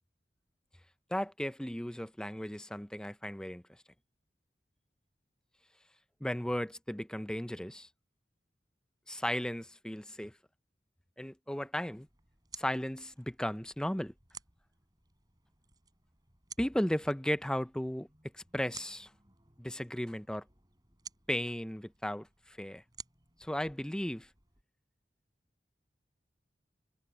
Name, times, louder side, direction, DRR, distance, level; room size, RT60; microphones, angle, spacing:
voice 1, 1.1-3.6 6.2-7.9 9.1-10.3 11.2-12.1 12.6-14.1 16.6-18.1 18.3-19.1 19.6-20.4 21.3-22.8 23.4-24.3, equal, 5° left, 0.5 m, -35 dB
sound 1, 11.8-24.6, right 6 dB, 20° right, 6.0 m, -55 dB
head